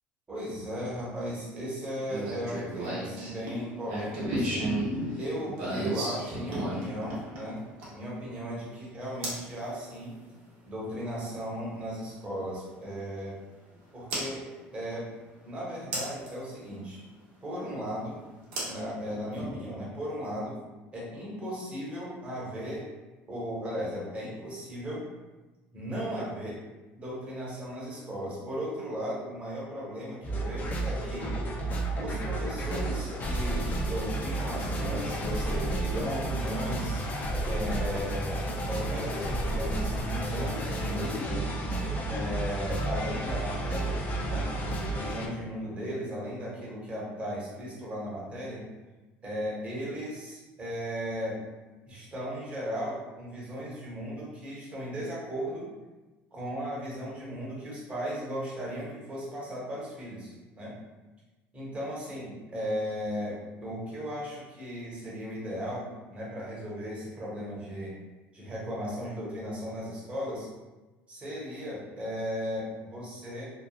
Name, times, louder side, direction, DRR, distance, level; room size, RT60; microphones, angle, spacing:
voice 1, 0.3-4.7 5.2-7.6 7.9-10.1 10.6-13.4 13.9-15.1 15.4-17.0 17.4-18.2 18.6-20.6 20.9-22.9 23.3-25.0 25.7-26.6 26.9-31.4 32.0-37.0 37.5-41.5 42.1-44.5 45.0-48.6 49.2-51.4 51.9-55.7 56.3-60.7 61.5-68.0 68.3-70.5 71.1-73.5, equal, 25° right, -6 dB, 1.2 m, -36 dB
sound 1, 2.1-8.1 9.2-9.5 11.4-11.5 14.1-14.3 15.9-16.3 18.5-19.5, right 1 dB, 85° right, 1.0 m, -33 dB
sound 2, 30.2-45.3, right 1 dB, 35° left, 0.5 m, -31 dB
3.1 x 2.2 x 2.4 m, 1.2 s
supercardioid pair, 110°, 5 cm